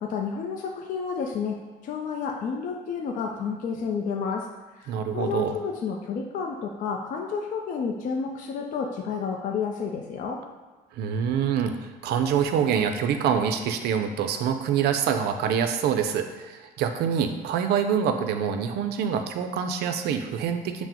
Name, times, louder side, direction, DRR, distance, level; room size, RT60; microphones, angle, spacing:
voice 1, 0.0-1.6 1.8-4.5 4.8-10.4, left 6 dB, 50° left, 1 dB, 0.4 m, -30 dB
voice 2, 4.9-5.5 11.0-20.9, right 7 dB, 75° right, 7 dB, 0.4 m, -25 dB
5.8 x 2.0 x 2.9 m, 1.3 s
cardioid pair, 110°, 17 cm